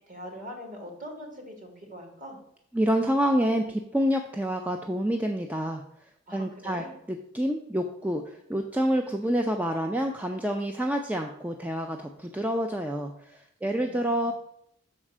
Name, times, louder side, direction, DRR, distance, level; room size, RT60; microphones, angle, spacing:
voice 1, 0.0-2.4 6.3-6.9 13.6-14.3, equal, 40° right, 1 dB, 1.9 m, -42 dB
voice 2, 2.7-5.8 6.3-14.3, equal, 10° right, 3 dB, 0.4 m, -28 dB
6.5 x 4.4 x 6.0 m, 0.74 s
head